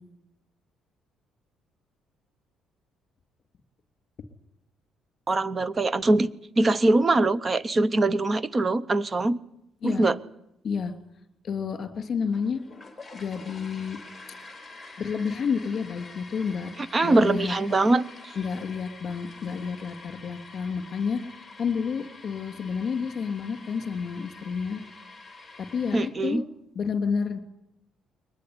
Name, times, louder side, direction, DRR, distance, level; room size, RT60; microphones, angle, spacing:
voice 1, 5.3-6.3 6.6-9.4 9.8-10.2 16.9-18.0 25.9-26.4, right 2 dB, 25° right, 0.9 m, -22 dB
voice 2, 11.4-12.6 13.1-14.0 15.0-16.7 17.0-17.5 18.4-24.8 25.7-26.4 26.7-27.4, left 6 dB, 40° left, 3.0 m, -30 dB
sound 1, 12.3-26.1, left 3 dB, 10° left, 4.1 m, -47 dB
22.5 x 20.0 x 9.8 m
cardioid pair, 140°, 0 cm